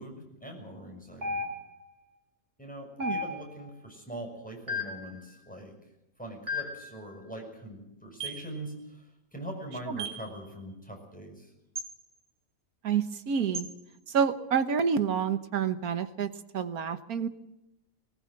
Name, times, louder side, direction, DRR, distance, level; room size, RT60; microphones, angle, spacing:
voice 1, 0.0-1.4 2.6-5.7 6.2-11.5, right 1 dB, 5° left, 2 dB, 6.5 m, -42 dB
sound 1, 1.2-1.9 3.0-3.7 4.7-5.1 6.5-6.9 8.2-8.5 10.0-10.3 11.8-11.9 13.5-13.7, left 2 dB, 50° right, 3.0 m, -34 dB
voice 2, 12.8-13.7 14.1-17.3, right 7 dB, 90° right, 11 dB, 1.7 m, -28 dB
20.0 x 19.0 x 7.6 m, 0.90 s
omnidirectional pair, 1.5 m